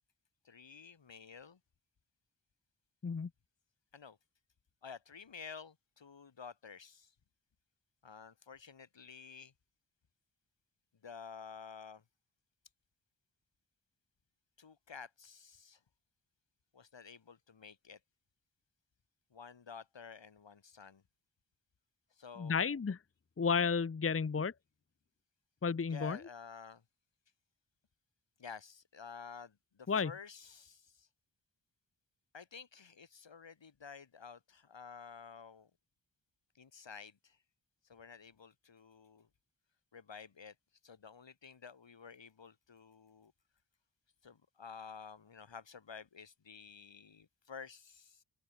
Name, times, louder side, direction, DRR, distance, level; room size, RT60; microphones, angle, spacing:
voice 1, 0.4-1.6 3.9-4.2 4.8-7.1 8.0-9.5 11.0-12.0 14.6-15.8 16.7-18.0 19.3-21.0 22.1-22.8 25.9-26.8 28.4-31.1 32.3-35.7 36.6-37.4 37.9-39.3 39.9-40.6 40.8-43.3 44.2-48.2, left 6 dB, 75° left, 3.8 m, -51 dB
voice 2, 22.4-23.0 23.4-24.5 25.6-26.2 29.9-30.1, left 5 dB, 30° left, 0.8 m, -32 dB
open air
wide cardioid pair, 95°, 44 cm